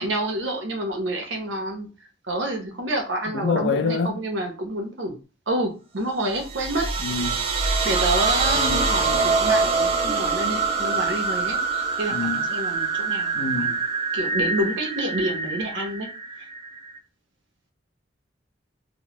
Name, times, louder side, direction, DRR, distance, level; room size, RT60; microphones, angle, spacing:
voice 1, 0.0-1.9 2.3-5.2 5.5-6.9 7.6-13.7 14.1-16.1, right 1 dB, 85° right, 0.9 m, -28 dB
voice 2, 3.3-4.2 7.0-7.4 8.6-8.9 12.1-12.4 13.3-13.8, left 4 dB, 65° left, 0.4 m, -26 dB
sound 1, 6.4-17.0, right 4 dB, 30° right, 0.4 m, -25 dB
3.1 x 2.1 x 3.0 m
head